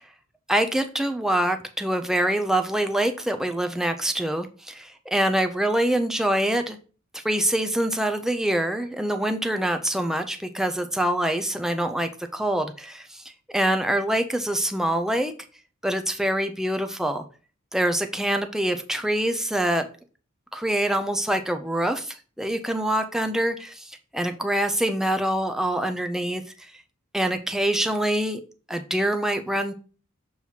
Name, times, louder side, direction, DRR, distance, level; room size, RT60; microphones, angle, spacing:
voice 1, 0.5-6.8 7.1-13.2 13.5-15.3 15.8-17.2 17.7-19.9 20.5-26.4 27.1-28.4 28.7-29.7, right 1 dB, ahead, 6 dB, 0.5 m, -25 dB
7.1 x 3.0 x 5.7 m, 0.37 s
head